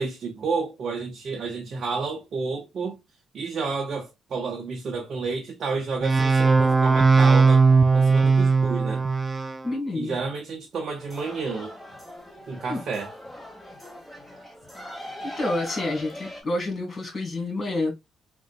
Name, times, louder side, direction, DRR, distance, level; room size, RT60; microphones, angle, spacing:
voice 1, 0.0-3.0 3.3-7.6 7.9-9.0 9.9-11.7 12.5-13.1, right 4 dB, 55° right, 0.7 m, -30 dB
sound 1, 6.0-9.6, right 4 dB, 25° right, 0.3 m, -18 dB
voice 2, 9.6-10.2 12.7-12.8 15.4-17.9, left 2 dB, 35° left, 1.9 m, -28 dB
sound 2, 10.9-16.4, equal, 5° left, 1.3 m, -40 dB
3.8 x 2.3 x 2.4 m
cardioid pair, 90°, 0 cm